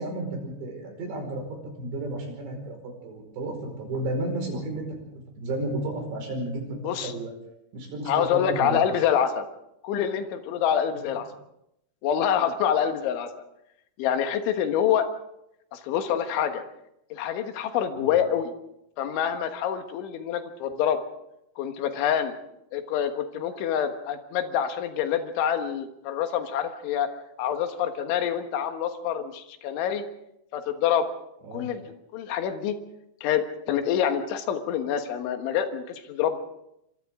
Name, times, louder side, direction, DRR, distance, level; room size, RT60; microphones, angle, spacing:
voice 1, 0.0-1.4 1.8-4.9 5.4-7.3 7.7-8.8 18.0-18.1 31.4-31.7, right 2 dB, 65° right, 3 dB, 7.2 m, -32 dB
voice 2, 8.1-9.5 9.8-11.3 12.0-13.3 14.0-15.1 15.7-16.6 17.1-18.5 19.0-21.0 21.6-22.3 22.7-27.1 27.4-30.0 30.5-31.1 31.5-31.8 32.1-32.8 33.2-36.4, left 9 dB, 80° left, 7 dB, 3.8 m, -26 dB
27.5 x 25.5 x 3.7 m, 0.81 s
omnidirectional pair, 5.5 m